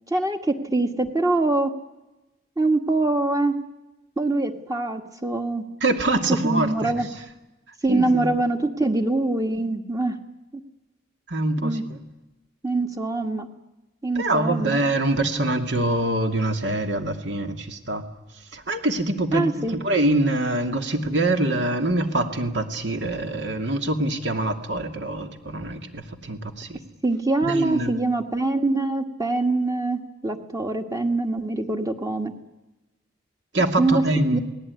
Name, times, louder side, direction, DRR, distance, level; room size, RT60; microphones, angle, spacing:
voice 1, 0.1-1.7 2.6-3.5 4.2-5.6 6.3-7.1 7.8-10.2 11.6-11.8 12.6-13.5 14.0-14.8 19.3-19.8 27.0-32.3 33.8-34.0 34.3-34.4, right 2 dB, 15° right, 5 dB, 1.7 m, -24 dB
voice 2, 5.8-7.1 7.9-8.3 11.3-12.0 14.2-18.0 18.5-26.8 27.4-27.9 33.5-34.4, right 1 dB, 55° right, 6 dB, 2.5 m, -24 dB
28.5 x 19.5 x 9.7 m, 1.0 s
head